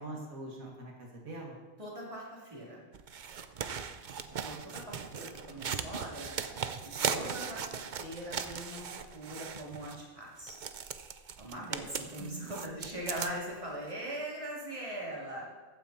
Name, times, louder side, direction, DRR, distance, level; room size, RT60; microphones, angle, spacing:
voice 1, 0.0-1.6 4.9-5.1 12.2-12.7 13.0-13.4, right 2 dB, 75° right, -1 dB, 2.3 m, -44 dB
voice 2, 1.8-2.8 4.4-6.3 7.0-10.6 11.4-15.4, right 1 dB, 20° right, -4 dB, 2.9 m, -41 dB
Cutting paper, 2.9-10.0 10.4-13.6 13.9-14.0, right 6 dB, 50° right, 0.6 m, -38 dB
14.5 x 9.3 x 4.3 m, 1.3 s
omnidirectional pair, 1.5 m